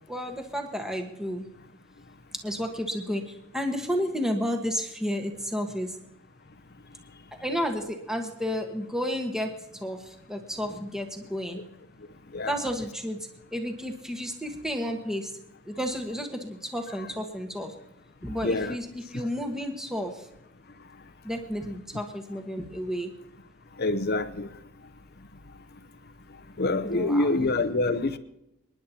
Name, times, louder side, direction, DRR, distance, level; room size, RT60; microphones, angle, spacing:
voice 1, 0.1-1.5 2.4-6.0 7.3-11.6 12.5-15.3 15.6-17.7 18.2-20.3 21.2-23.1 26.8-27.3, equal, ahead, 3 dB, 1.4 m, -32 dB
voice 2, 18.4-18.8 23.8-24.5 26.6-28.2, left 2 dB, 45° left, 10 dB, 0.7 m, -26 dB
29.0 x 10.5 x 2.9 m, 0.86 s
head